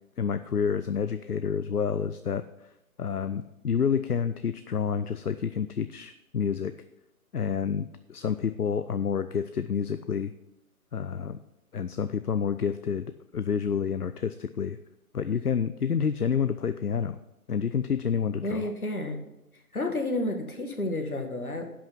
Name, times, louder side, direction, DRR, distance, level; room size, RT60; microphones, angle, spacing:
voice 1, 0.2-2.4 3.0-6.7 7.3-10.3 10.9-11.4 11.7-14.8 15.1-17.2 17.5-18.7, left 7 dB, 90° left, 12 dB, 0.6 m, -29 dB
voice 2, 18.4-19.2 19.7-21.7, left 2 dB, 75° left, 4 dB, 2.1 m, -30 dB
11.5 x 6.0 x 5.7 m, 0.89 s
figure-of-eight pair, 145°, 44 cm